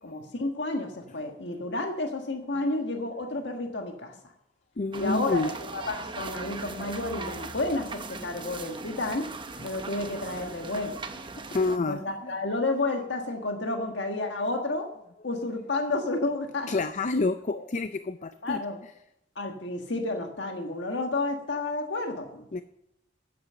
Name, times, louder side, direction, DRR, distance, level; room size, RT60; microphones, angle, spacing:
voice 1, 0.0-4.1 5.0-5.4 5.7-9.3 9.6-11.0 11.9-14.9 15.2-16.7 17.5-17.6 18.4-18.8 19.3-22.6, left 2 dB, 70° left, 3 dB, 1.6 m, -31 dB
voice 2, 4.8-5.5 8.3-8.5 8.9-9.0 9.6-9.7 10.3-10.7 11.5-12.3 16.7-18.6 22.5-22.6, left 3 dB, 40° left, 11 dB, 0.5 m, -29 dB
sound 1, 4.9-11.8, right 3 dB, 25° right, 0.9 m, -39 dB
12.5 x 9.5 x 6.9 m, 0.80 s
head